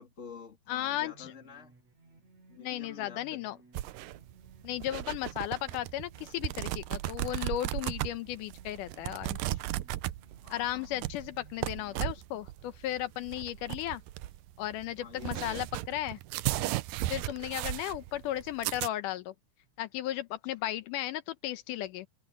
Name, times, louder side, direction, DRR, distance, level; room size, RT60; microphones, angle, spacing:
voice 1, 0.0-1.7 2.5-3.4 10.4-11.1 15.0-15.6, left 5 dB, 25° left, 2.5 m, -49 dB
voice 2, 0.7-1.3 2.6-3.6 4.6-9.6 10.5-14.0 14.6-16.2 16.6-16.8 17.1-19.3 19.8-22.1, left 13 dB, 80° left, 2.3 m, -35 dB
sound 1, 0.7-12.0, right 3 dB, 55° right, 8.7 m, -60 dB
sound 2, 3.7-18.9, right 16 dB, 90° right, 2.3 m, -36 dB
omnidirectional pair, 3.7 m